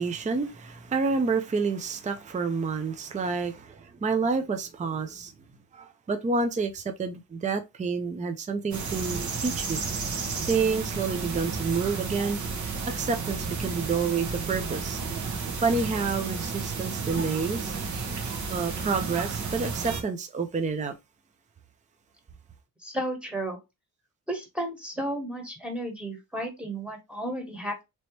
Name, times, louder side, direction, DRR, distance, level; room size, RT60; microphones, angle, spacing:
voice 1, 0.0-5.3 5.7-9.8 10.5-12.4 12.9-15.0 15.6-17.7 18.5-20.9, right 4 dB, 20° right, 0.5 m, -29 dB
sound 1, 8.7-20.0, right 5 dB, 55° right, 1.0 m, -32 dB
voice 2, 22.8-23.6 24.3-27.8, right 1 dB, 5° right, 1.4 m, -33 dB
3.0 x 3.0 x 3.0 m
cardioid pair, 85°, 35 cm